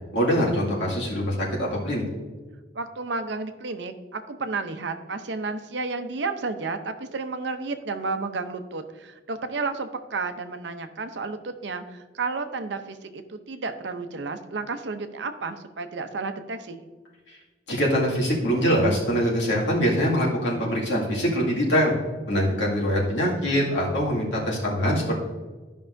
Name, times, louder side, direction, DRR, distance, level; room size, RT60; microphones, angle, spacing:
voice 1, 0.1-2.0 17.3-17.4 17.7-21.9 22.3-25.2, equal, 80° left, -4 dB, 2.1 m, -23 dB
voice 2, 2.7-16.9, right 3 dB, 75° right, 8 dB, 0.6 m, -32 dB
13.0 x 5.4 x 2.6 m, 1.3 s
head